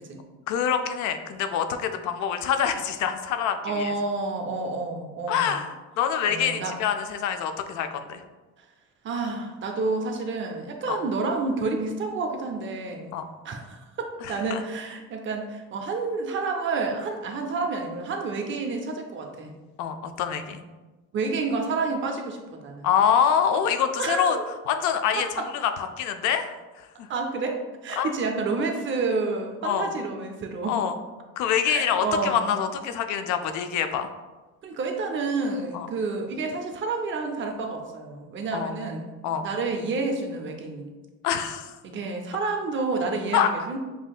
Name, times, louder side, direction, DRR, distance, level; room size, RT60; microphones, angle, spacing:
voice 1, 0.5-3.9 5.3-8.2 10.9-11.0 13.1-13.2 14.2-14.6 19.8-20.6 22.8-24.4 24.7-26.5 26.8-27.1 28.0-28.1 29.6-29.9 30.7-30.9 31.4-34.1 35.7-35.9 38.5-39.5 41.2-41.7 43.3-43.5, left 8 dB, 75° left, 8 dB, 0.4 m, -26 dB
voice 2, 3.6-5.6 6.2-6.8 9.0-13.1 13.4-19.5 21.1-22.9 24.0-24.4 25.2-25.5 27.1-30.8 31.7-32.5 34.6-39.1 39.4-40.9 41.8-43.8, right 3 dB, 40° right, 3 dB, 0.6 m, -29 dB
5.5 x 2.7 x 2.3 m, 1.2 s
cardioid pair, 130°, 30 cm